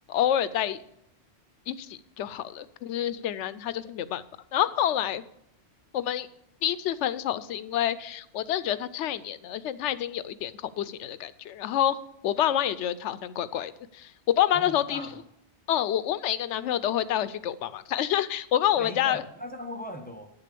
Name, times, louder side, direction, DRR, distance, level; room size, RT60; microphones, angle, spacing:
voice 1, 0.1-0.8 1.7-4.2 4.5-5.2 5.9-6.3 6.6-12.0 12.2-15.1 15.7-19.2, left 11 dB, 90° left, 15 dB, 0.9 m, -28 dB
voice 2, 14.5-15.1 18.8-20.3, equal, 10° left, 3 dB, 1.0 m, -39 dB
9.0 x 6.8 x 6.7 m, 0.76 s
omnidirectional pair, 1.2 m